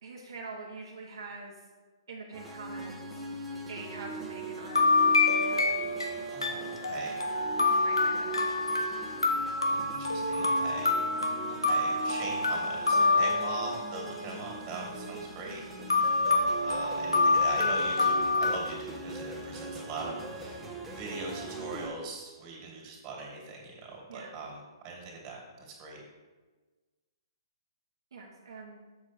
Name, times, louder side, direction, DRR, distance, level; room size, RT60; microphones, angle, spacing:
voice 1, 0.0-1.5 2.1-3.2 3.7-5.6 7.5-8.7 13.2-13.3 24.1-24.3 28.1-28.8, right 3 dB, 70° right, -3 dB, 1.5 m, -44 dB
sound 1, 2.3-21.9, right 2 dB, 10° right, 1.2 m, -40 dB
sound 2, 4.7-14.1 15.9-18.6, left 3 dB, 90° left, 1.0 m, -27 dB
voice 2, 6.3-7.2 9.7-11.0 11.6-15.6 16.6-26.0, right 3 dB, 30° right, -1 dB, 2.6 m, -41 dB
7.3 x 6.3 x 4.6 m, 1.3 s
hypercardioid pair, 130°, 3 cm